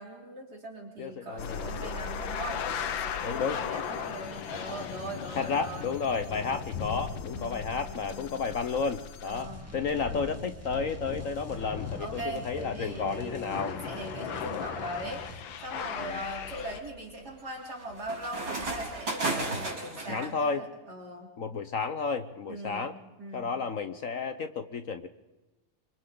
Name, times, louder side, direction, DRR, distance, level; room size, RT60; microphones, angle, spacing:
voice 1, 0.0-5.9 7.3-8.4 9.2-9.7 12.0-15.2 15.6-21.3 22.5-22.9 23.2-23.5, right 1 dB, 50° right, -1 dB, 4.0 m, -40 dB
voice 2, 1.0-1.9 3.2-3.6 5.4-13.8 16.0-16.2 20.1-20.6 21.4-22.9 23.3-25.1, left 5 dB, 55° left, 10 dB, 0.9 m, -32 dB
sound 1, 1.4-16.8, left 7 dB, 75° left, 1.8 m, -38 dB
sound 2, 9.3-15.5, right 1 dB, 5° right, 2.5 m, -46 dB
sound 3, 14.7-15.1 15.7-20.3, right 2 dB, 75° right, 5.1 m, -35 dB
28.0 x 24.0 x 3.9 m, 1.1 s
omnidirectional pair, 2.2 m